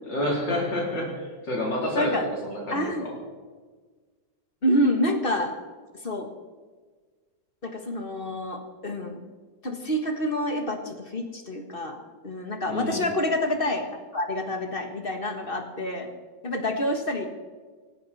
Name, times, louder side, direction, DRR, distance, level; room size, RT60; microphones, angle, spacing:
voice 1, 0.0-2.1 2.4-3.1 12.7-13.0, left 1 dB, 75° left, -3 dB, 4.4 m, -29 dB
voice 2, 1.9-2.3 2.7-3.0 4.6-5.5 6.0-6.3 7.6-9.2 9.6-16.1 16.4-17.3, left 1 dB, 30° left, 5 dB, 1.7 m, -27 dB
18.5 x 15.5 x 4.3 m, 1.4 s
omnidirectional pair, 2.0 m